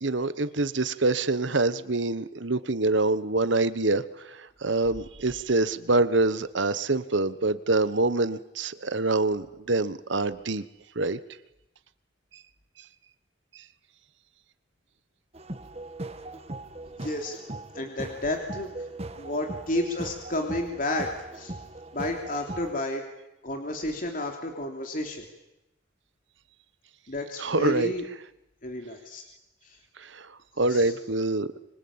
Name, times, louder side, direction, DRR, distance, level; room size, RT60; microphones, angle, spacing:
voice 1, 0.0-10.6 10.9-11.2 13.5-13.6 27.4-27.9 30.0-31.5, right 2 dB, 75° right, 14 dB, 1.2 m, -26 dB
sound 1, 15.3-22.7, right 2 dB, 35° right, 1.6 m, -39 dB
voice 2, 17.0-17.4 17.7-18.7 19.2-21.1 21.3-21.5 21.9-23.0 23.4-25.2 27.1-28.0 28.6-29.2 29.6-29.8 30.7-30.9, left 1 dB, 45° left, 2 dB, 3.1 m, -31 dB
26.0 x 25.0 x 8.9 m, 0.92 s
head